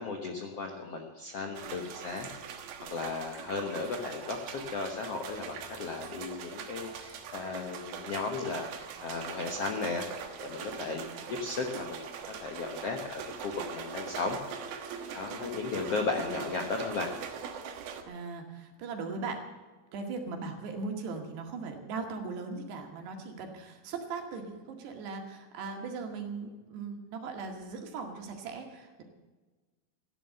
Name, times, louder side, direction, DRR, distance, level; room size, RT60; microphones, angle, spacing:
voice 1, 0.0-2.6 2.9-12.1 12.4-14.4 15.1-17.1, left 4 dB, 70° left, 2 dB, 1.4 m, -35 dB
sound 1, 1.6-18.0, right 7 dB, 70° right, 3.1 m, -42 dB
voice 2, 18.1-19.4 19.9-29.0, right 4 dB, 85° right, 3 dB, 4.2 m, -39 dB
15.0 x 11.5 x 7.8 m, 1.3 s
omnidirectional pair, 4.7 m